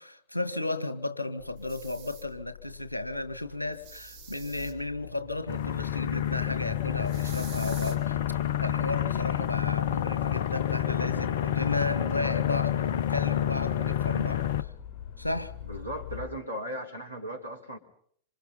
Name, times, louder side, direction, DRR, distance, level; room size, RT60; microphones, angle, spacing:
voice 1, 0.0-14.7 15.2-15.5, left 2 dB, 85° left, 1.6 m, -34 dB
sound 1, 1.4-16.2, left 9 dB, 35° left, 7.6 m, -45 dB
sound 2, 1.6-2.2 3.7-4.7 7.0-8.0, right 8 dB, 50° right, 5.3 m, -47 dB
sound 3, 5.5-14.6, left 11 dB, 55° left, 1.0 m, -29 dB
voice 2, 15.6-17.8, equal, 85° right, 4.4 m, -37 dB
27.0 x 25.5 x 5.7 m
figure-of-eight pair, 90°, 0 cm